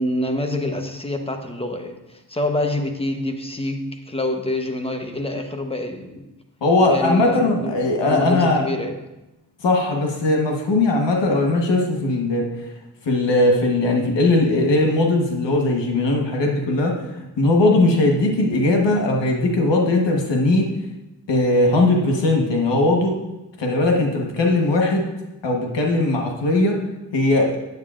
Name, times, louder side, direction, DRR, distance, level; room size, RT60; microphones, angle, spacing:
voice 1, 0.0-6.3 6.8-9.0, left 1 dB, 15° left, 4 dB, 0.9 m, -26 dB
voice 2, 6.6-8.7 9.6-12.4 13.0-16.9 17.4-20.7 21.3-23.1 23.6-25.0 25.4-26.8 27.1-27.5, left 2 dB, 85° left, 1 dB, 1.3 m, -19 dB
9.4 x 8.1 x 2.5 m, 0.97 s
cardioid pair, 75°, 42 cm